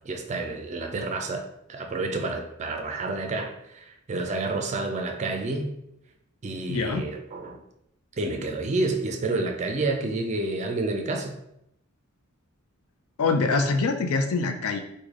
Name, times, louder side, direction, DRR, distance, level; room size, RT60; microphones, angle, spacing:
voice 1, 0.1-5.8 6.4-7.6 8.2-11.4, right 2 dB, 30° right, 4 dB, 0.4 m, -29 dB
voice 2, 6.7-7.0 13.2-14.8, left 3 dB, 75° left, 5 dB, 0.4 m, -24 dB
3.2 x 2.2 x 3.6 m, 0.80 s
head